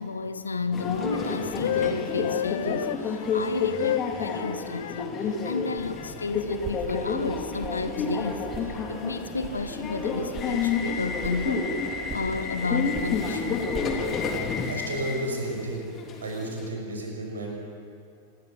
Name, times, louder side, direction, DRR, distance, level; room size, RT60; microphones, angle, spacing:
voice 1, 0.0-5.1 5.4-11.7 12.1-13.7, left 4 dB, 75° left, 10 dB, 1.4 m, -32 dB
Subway metro underground, 0.7-16.7, left 4 dB, 30° left, 3.1 m, -30 dB
sound 1, 1.2-5.0 5.8-6.4, left 12 dB, 60° left, 0.5 m, -31 dB
sound 2, 5.8-14.5, right 4 dB, 25° right, 3.3 m, -41 dB
voice 2, 14.7-15.8 16.2-17.5, right 1 dB, 70° right, 1 dB, 6.0 m, -32 dB
26.0 x 21.0 x 6.7 m, 2.6 s
figure-of-eight pair, 90°, 0 cm